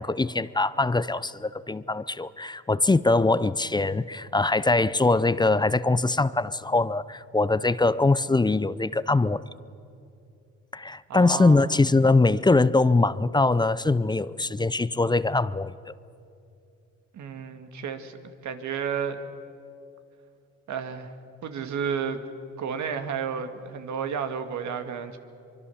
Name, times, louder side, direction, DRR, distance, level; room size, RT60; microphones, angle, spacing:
voice 1, 0.0-9.4 10.7-15.7, left 3 dB, 15° left, 17 dB, 0.6 m, -22 dB
voice 2, 11.1-11.7 17.1-19.2 20.7-21.1 21.4-22.2 22.6-25.2, right 7 dB, 70° right, 7 dB, 2.0 m, -32 dB
24.0 x 24.0 x 7.1 m, 2.6 s
cardioid pair, 90°, 30 cm